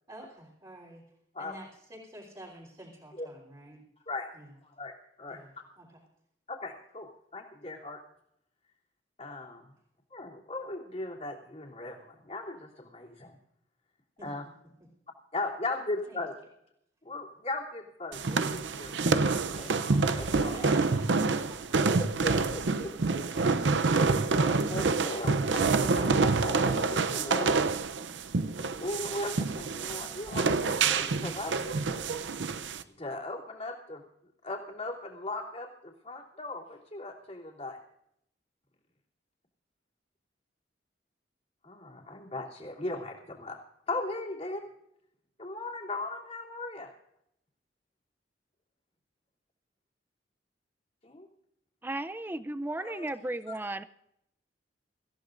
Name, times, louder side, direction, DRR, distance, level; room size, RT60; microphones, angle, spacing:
voice 1, 0.1-1.0 1.4-3.8 4.3-4.5 5.3-5.5 5.8-6.0 14.2-14.3 15.7-16.2 20.5-22.0, right 1 dB, 30° right, -7 dB, 3.6 m, -49 dB
voice 2, 4.6-5.4 6.5-8.0 9.2-9.7 10.1-13.3 14.2-14.4 15.3-16.3 17.0-20.7 22.0-23.2 24.4-27.5 28.8-32.0 32.9-34.0 34.4-37.8 41.6-43.6 43.9-44.6 45.4-46.9 51.0-51.3 52.8-53.1, left 2 dB, 35° left, -2 dB, 3.0 m, -38 dB
sound 1, 18.1-32.8, right 4 dB, 80° right, 0.7 m, -27 dB
voice 3, 51.8-53.8, right 1 dB, 10° right, 14 dB, 0.5 m, -35 dB
25.5 x 14.5 x 2.6 m, 0.77 s
head